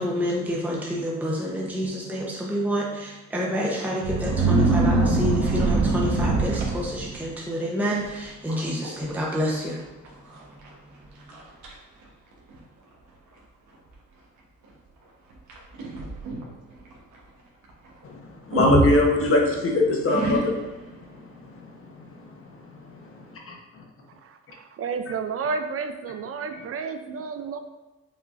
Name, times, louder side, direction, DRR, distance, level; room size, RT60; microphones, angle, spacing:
voice 1, 0.0-9.8 10.6-10.7 11.3-11.4, equal, 5° right, -4 dB, 0.9 m, -28 dB
sound 1, 4.0-7.3 7.9-8.2 8.5-8.9 9.2-9.3 10.1-10.2 10.7-10.8 11.3-11.7 12.5-12.6 15.5-16.5 18.5-19.6 20.1-20.8, right 2 dB, 70° right, 1.2 m, -23 dB
voice 2, 18.5-20.6 23.5-23.6, left 2 dB, 45° left, 0 dB, 1.0 m, -20 dB
voice 3, 24.2-27.6, right 5 dB, 50° right, 7 dB, 0.5 m, -31 dB
5.3 x 3.8 x 2.6 m, 1.1 s
cardioid pair, 90°, 30 cm